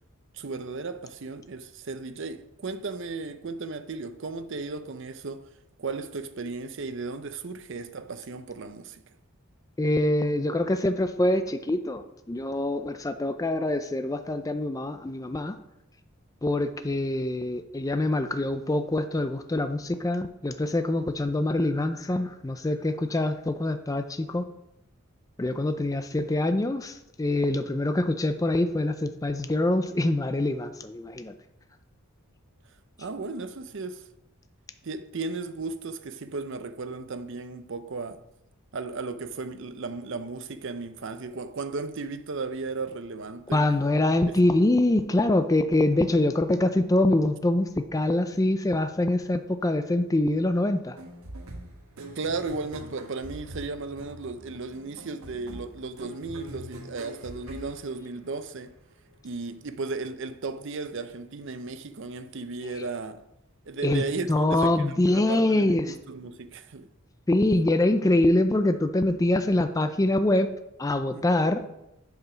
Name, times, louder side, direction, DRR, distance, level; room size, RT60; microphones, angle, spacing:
voice 1, 0.3-5.5 5.8-9.0 33.0-34.1 34.8-38.2 38.7-43.6 44.3-44.4 52.2-58.7 59.2-63.2 63.7-64.7 65.1-66.9 71.1-71.2, right 3 dB, 60° right, 0.6 m, -35 dB
voice 2, 9.8-15.5 16.4-24.5 25.4-31.3 43.5-51.0 63.8-64.0 64.3-65.9 67.3-70.5 70.8-71.6, left 1 dB, 15° left, 0.4 m, -24 dB
sound 1, 51.0-58.6, right 1 dB, 75° right, 1.3 m, -43 dB
7.9 x 4.8 x 5.7 m
head